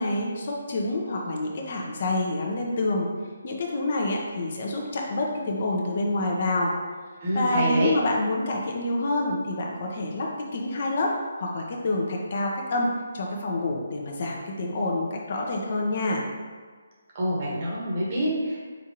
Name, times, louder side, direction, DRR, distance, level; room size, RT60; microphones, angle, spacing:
voice 1, 0.0-3.1 3.4-6.7 7.3-11.1 11.4-16.2, left 2 dB, 50° left, 0 dB, 0.7 m, -27 dB
voice 2, 7.2-7.9 17.1-18.7, right 1 dB, 40° right, -4 dB, 1.3 m, -27 dB
5.1 x 3.6 x 2.9 m, 1.5 s
figure-of-eight pair, 145°, 0 cm